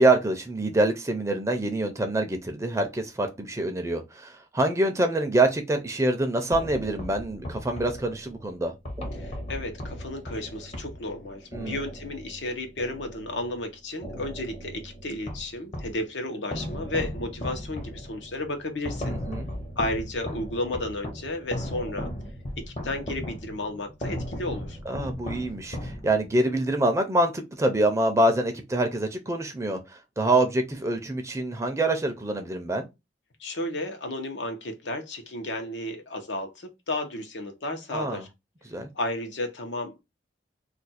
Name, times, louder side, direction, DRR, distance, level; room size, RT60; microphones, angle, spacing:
voice 1, 0.0-9.1 11.5-11.8 19.1-19.5 24.9-32.9 37.9-38.2 38.7-38.9, right 1 dB, 15° right, 0.4 m, -25 dB
sound 1, 6.5-13.6 14.0-16.0 16.5-26.4, equal, 35° left, 0.7 m, -37 dB
voice 2, 9.1-19.2 19.8-22.1 22.6-24.8 33.4-38.3 38.9-40.0, left 1 dB, 80° left, 0.8 m, -33 dB
2.5 x 2.3 x 4.0 m
head